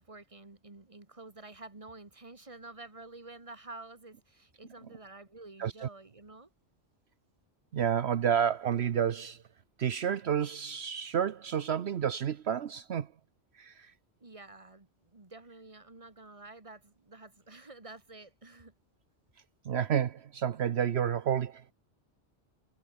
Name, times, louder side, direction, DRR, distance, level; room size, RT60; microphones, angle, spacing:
voice 1, 0.0-6.5 13.8-13.9 14.2-18.7, right 3 dB, 30° right, 2.2 m, -50 dB
voice 2, 5.6-5.9 7.7-9.4 9.8-13.1 13.5-13.9 19.6-21.7, right 8 dB, 70° right, 1.1 m, -30 dB
omnidirectional pair, 1.2 m